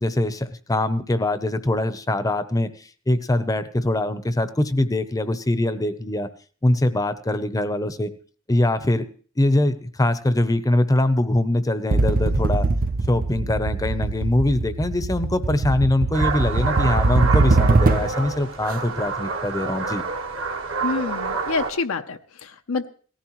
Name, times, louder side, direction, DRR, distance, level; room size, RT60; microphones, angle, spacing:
voice 1, 0.0-2.7 3.1-6.3 6.6-8.1 8.5-9.1 9.4-12.7 13.1-20.0, left 1 dB, 15° left, 12 dB, 0.7 m, -22 dB
sound 1, 11.9-18.3, right 2 dB, 45° right, 0.6 m, -22 dB
sound 2, 16.1-21.7, right 4 dB, 70° right, 1.6 m, -28 dB
voice 2, 20.8-22.9, left 4 dB, 80° left, 7 dB, 0.7 m, -27 dB
18.0 x 14.5 x 3.1 m, 0.43 s
head